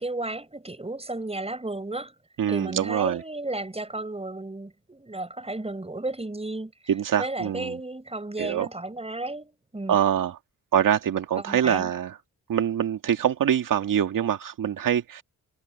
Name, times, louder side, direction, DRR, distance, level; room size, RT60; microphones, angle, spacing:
voice 1, 0.0-2.1 2.5-6.7 7.2-10.0 11.4-11.9, right 2 dB, 15° right, 6.2 m, -33 dB
voice 2, 2.4-3.2 6.9-7.8 8.4-8.7 9.9-10.4 10.7-12.2 12.5-15.2, right 9 dB, 65° right, 1.7 m, -24 dB
supercardioid pair, 55°, 35 cm